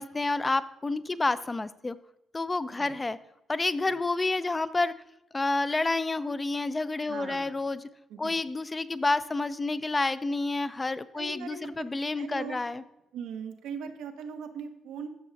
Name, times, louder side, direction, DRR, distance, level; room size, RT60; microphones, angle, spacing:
voice 1, 0.0-2.0 2.3-3.2 3.5-4.9 5.3-7.8 8.2-12.8, left 3 dB, 20° left, 14 dB, 0.4 m, -29 dB
voice 2, 7.1-7.7 8.1-8.3 11.2-11.6 12.2-12.6 13.1-15.1, right 6 dB, 85° right, 6 dB, 0.9 m, -40 dB
13.0 x 6.2 x 2.7 m, 0.88 s
cardioid pair, 90°, 0 cm